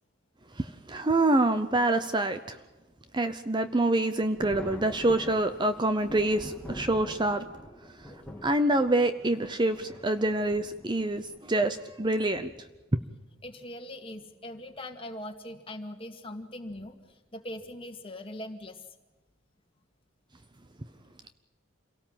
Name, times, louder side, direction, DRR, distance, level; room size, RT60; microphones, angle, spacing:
voice 1, 0.6-2.6 3.1-7.4 8.1-8.2 8.4-12.5, right 2 dB, 20° right, 10 dB, 0.7 m, -26 dB
Thunder, 4.4-11.4 12.4-12.5 14.0-14.2 14.6-14.7 16.7-16.9 17.6-17.9, equal, 5° left, 2.2 m, -45 dB
voice 2, 13.4-18.8, left 1 dB, 25° left, 4 dB, 2.1 m, -41 dB
27.5 x 18.0 x 7.6 m, 1.1 s
head